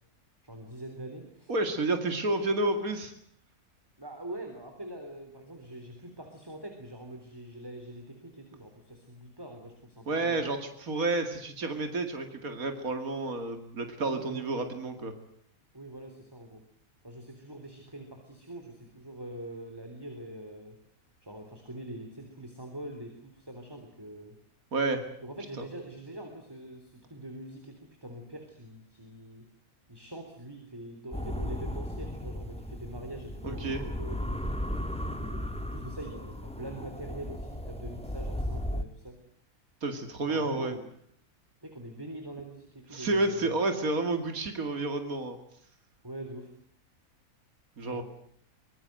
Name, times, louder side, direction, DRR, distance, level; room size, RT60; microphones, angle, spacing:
voice 1, 0.4-1.5 4.0-10.6 14.0-14.5 15.7-16.6 17.0-20.8 21.2-24.3 25.2-29.5 29.9-34.4 35.1-39.2 40.3-40.8 41.6-43.6 46.0-46.5 47.8-48.0, right 1 dB, 15° right, 5 dB, 3.8 m, -44 dB
voice 2, 1.5-3.1 10.1-15.1 24.7-25.0 33.4-33.8 39.8-40.8 42.9-45.4 47.8-48.0, right 2 dB, 75° right, 6 dB, 2.8 m, -30 dB
sound 1, 31.1-38.8, equal, 5° left, 1.7 m, -35 dB
25.0 x 22.5 x 7.8 m, 0.65 s
omnidirectional pair, 1.5 m